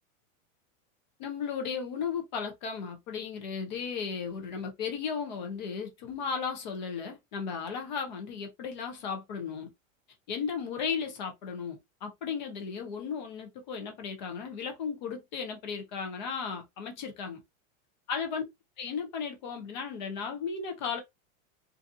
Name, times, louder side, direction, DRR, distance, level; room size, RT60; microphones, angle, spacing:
voice 1, 1.2-9.7 10.3-17.4 18.1-18.4 18.8-21.0, left 6 dB, 35° left, 0.6 m, -35 dB
2.7 x 2.4 x 2.4 m
supercardioid pair, 175°, 41 cm